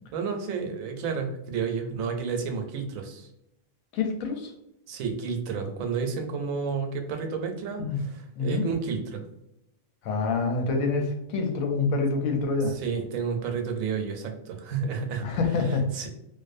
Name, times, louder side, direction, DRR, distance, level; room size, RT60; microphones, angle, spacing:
voice 1, 0.1-3.3 4.9-9.2 12.8-15.3 15.9-16.1, right 5 dB, 80° right, 5 dB, 1.0 m, -31 dB
voice 2, 3.9-4.5 7.8-8.0 8.4-8.6 10.0-12.8 15.2-15.8, left 4 dB, 85° left, 4 dB, 1.0 m, -26 dB
2.5 x 2.1 x 2.4 m, 0.82 s
omnidirectional pair, 1.4 m